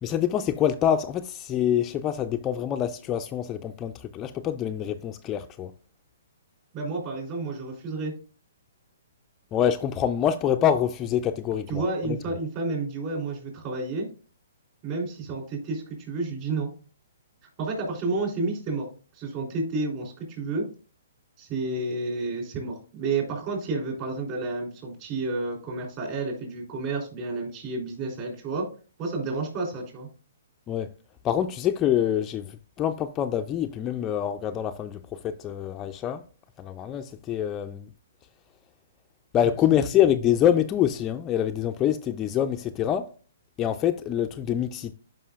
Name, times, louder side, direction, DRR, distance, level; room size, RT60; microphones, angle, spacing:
voice 1, 0.0-5.7 9.5-12.2 30.7-30.9 31.2-36.2 36.6-37.9 39.3-43.1 43.6-44.9, left 10 dB, 20° left, 0.3 m, -25 dB
voice 2, 6.7-8.1 11.7-14.1 14.8-16.7 17.6-18.9 19.1-20.6 21.4-28.7 29.0-30.1 39.7-39.9, right 3 dB, 35° right, 3.4 m, -30 dB
11.0 x 5.3 x 2.4 m
hypercardioid pair, 150°, 0 cm